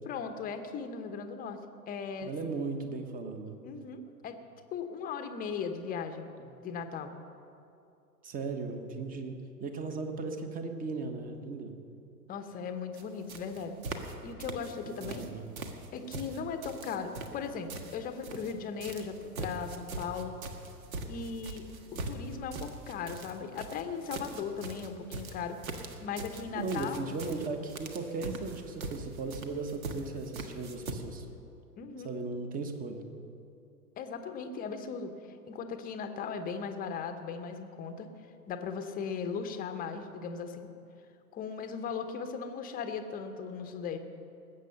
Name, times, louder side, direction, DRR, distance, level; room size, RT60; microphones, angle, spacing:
voice 1, 0.1-1.6 1.9-2.3 3.6-4.4 4.7-6.3 6.6-7.1 12.3-13.8 14.2-15.3 15.9-20.4 21.1-21.6 21.9-25.6 26.0-27.1 31.8-32.1 34.0-35.1 35.5-38.1 38.5-40.7 41.3-44.0, left 6 dB, 15° left, 7 dB, 1.0 m, -38 dB
voice 2, 2.2-3.6 8.2-11.8 14.8-15.5 26.5-31.3 32.0-33.1, right 3 dB, 15° right, 6 dB, 1.3 m, -37 dB
sound 1, 12.9-13.0 13.3-14.1 14.4-15.3 15.6-18.5 18.8-30.9, right 3 dB, 55° right, 1.7 m, -41 dB
19.5 x 8.4 x 6.8 m, 2.6 s
figure-of-eight pair, 105°, 49 cm